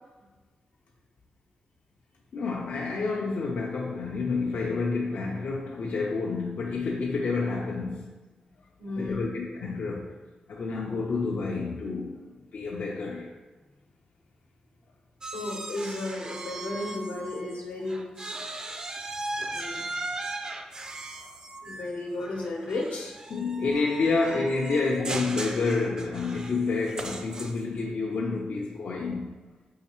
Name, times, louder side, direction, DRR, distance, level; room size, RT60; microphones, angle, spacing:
voice 1, 2.3-8.1 9.0-10.1 10.5-12.1 12.5-13.3 20.4-20.5 23.3-29.4, left 3 dB, 65° left, -3 dB, 0.5 m, -29 dB
voice 2, 8.8-9.3 15.3-18.4 19.5-19.8 21.6-23.1, left 2 dB, 90° left, -1 dB, 0.9 m, -34 dB
sound 1, 15.2-17.6 17.9-27.8, right 2 dB, 30° right, 0.3 m, -38 dB
5.6 x 3.1 x 2.9 m, 1.3 s
wide cardioid pair, 140°, 2 cm